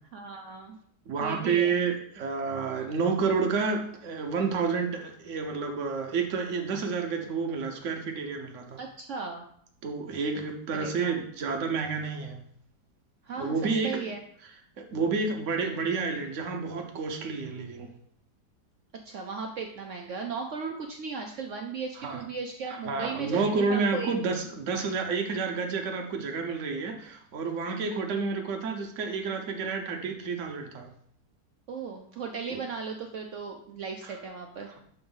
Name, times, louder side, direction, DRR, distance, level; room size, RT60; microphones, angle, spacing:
voice 1, 0.1-0.8 1.2-1.8 8.8-9.4 10.8-11.2 13.2-14.2 19.0-24.1 27.8-28.1 31.7-34.7, right 5 dB, 70° right, 3 dB, 0.7 m, -36 dB
voice 2, 1.1-8.8 9.8-12.4 13.4-14.0 14.8-17.9 22.0-22.2 22.7-30.9 32.5-32.6 34.0-34.2, right 4 dB, 55° right, 3 dB, 1.0 m, -30 dB
6.8 x 2.6 x 5.4 m, 0.66 s
omnidirectional pair, 1.9 m